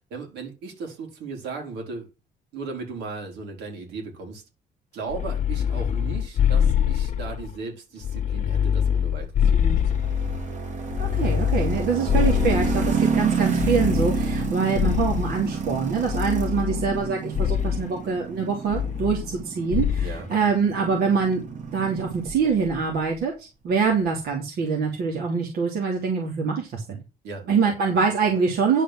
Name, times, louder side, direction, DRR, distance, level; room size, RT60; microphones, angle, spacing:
voice 1, 0.0-2.1 2.5-4.4 4.9-10.1 20.0-20.3 27.2-27.7, right 4 dB, 85° right, 4.9 m, -37 dB
sound 1, 5.1-7.5 8.0-10.5 10.9-13.1 13.6-15.4 16.1-17.0 17.3-17.8 18.7-19.4 19.7-20.2, left 8 dB, 45° left, 0.7 m, -24 dB
sound 2, 9.7-22.8, right 5 dB, 45° right, 2.8 m, -30 dB
voice 2, 11.0-27.0 27.5-28.8, right 5 dB, 70° right, 3.0 m, -24 dB
10.5 x 5.1 x 6.1 m
cardioid pair, 110°, 17 cm